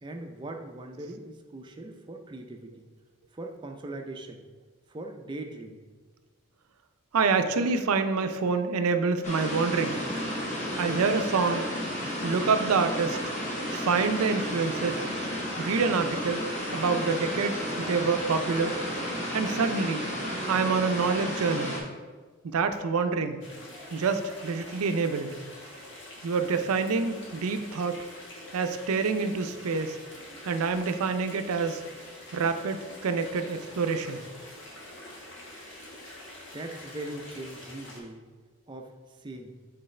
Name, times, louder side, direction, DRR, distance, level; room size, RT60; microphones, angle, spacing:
voice 1, 0.0-2.8 3.3-4.4 4.9-5.9 36.5-38.2 38.7-39.5, right 2 dB, 20° right, 3 dB, 0.4 m, -40 dB
voice 2, 7.1-10.0 10.7-11.7 12.2-13.2 13.7-15.0 15.6-16.4 16.7-19.0 19.3-20.1 20.5-21.8 22.4-23.4 23.9-25.4 26.2-28.0 28.5-30.0 30.4-31.8 32.3-34.2, right 4 dB, 85° right, 9 dB, 0.5 m, -27 dB
sound 1, 9.2-21.8, equal, 35° left, 1.1 m, -32 dB
sound 2, 23.4-38.0, left 1 dB, 55° left, 1.4 m, -46 dB
7.8 x 4.0 x 3.2 m, 1.4 s
head